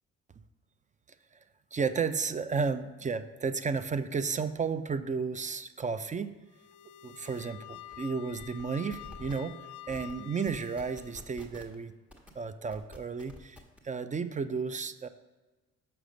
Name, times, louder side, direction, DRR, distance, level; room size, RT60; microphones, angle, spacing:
voice 1, 1.7-6.4 7.0-9.6 9.9-11.9 12.4-15.1, right 5 dB, 25° right, 12 dB, 0.5 m, -33 dB
sound 1, 6.5-11.3, left 11 dB, 75° left, 0.5 m, -48 dB
sound 2, 7.7-8.0 8.3-8.6 8.9-9.3 9.9-10.1 10.4-11.7 12.1-12.3 12.7-13.8, left 2 dB, 5° right, 1.4 m, -48 dB
6.0 x 5.0 x 6.3 m, 1.2 s
cardioid pair, 90°, 30 cm